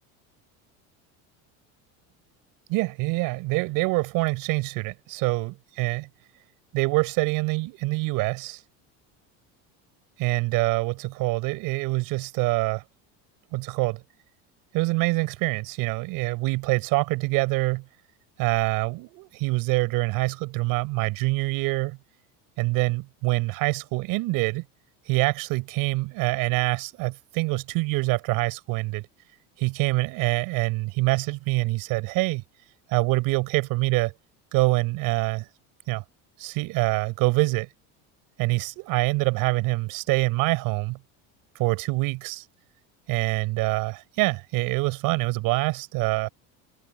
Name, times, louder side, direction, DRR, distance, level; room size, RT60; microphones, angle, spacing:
voice 1, 2.7-6.1 6.7-8.6 10.2-12.8 13.5-14.0 14.7-17.8 18.4-22.0 22.6-24.6 25.1-29.1 29.6-32.4 32.9-34.1 34.5-35.5 35.9-36.0 36.4-37.7 38.4-41.0 41.6-42.4 43.1-46.3, right 23 dB, 65° right, 5.8 m, -25 dB
cardioid pair, 155°, 36 cm